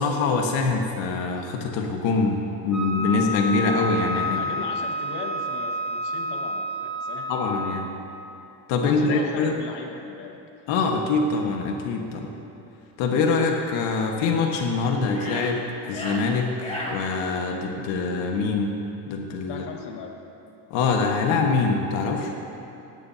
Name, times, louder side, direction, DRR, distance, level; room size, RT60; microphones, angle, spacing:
voice 1, 0.0-4.4 7.3-7.9 8.7-9.6 10.7-12.3 13.0-18.8 19.1-19.6 20.7-22.3, left 4 dB, 85° left, 1 dB, 1.6 m, -24 dB
Wind instrument woodwind instrument, 2.7-7.9, equal, ahead, 2.2 m, -29 dB
voice 2, 4.3-7.3 8.8-10.4 19.5-20.2, left 5 dB, 60° left, 2 dB, 1.7 m, -38 dB
sound 1, 14.6-14.7 15.1-15.5 15.8-16.2 16.6-16.9, left 1 dB, 15° left, 2.1 m, -34 dB
18.5 x 18.0 x 2.8 m, 2.9 s
cardioid pair, 170°, 45 cm